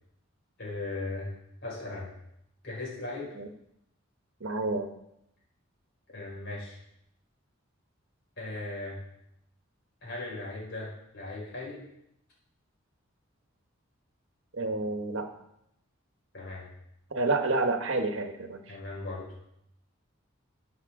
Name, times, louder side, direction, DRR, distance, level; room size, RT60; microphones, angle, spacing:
voice 1, 0.6-1.3 1.6-2.1 2.6-3.4 6.1-6.8 8.4-9.0 10.0-11.8 16.3-16.7 18.7-19.4, left 2 dB, 60° left, -4 dB, 5.2 m, -38 dB
voice 2, 4.4-4.9 14.5-15.3 17.1-18.6, right 3 dB, 70° right, 6 dB, 1.2 m, -29 dB
14.0 x 7.9 x 3.7 m, 0.78 s
head